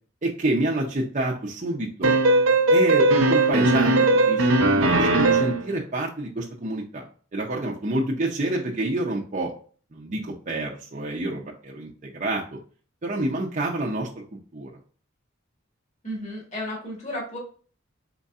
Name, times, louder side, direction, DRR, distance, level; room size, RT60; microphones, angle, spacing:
voice 1, 0.2-2.2 2.7-7.0 7.3-9.5 9.9-12.6 13.0-14.7, right 1 dB, 40° right, -2 dB, 0.6 m, -28 dB
sound 1, 2.0-5.7, right 2 dB, 85° right, 0.7 m, -19 dB
voice 2, 16.0-17.4, left 1 dB, 35° left, -4 dB, 1.8 m, -33 dB
4.4 x 4.1 x 2.4 m, 0.42 s
head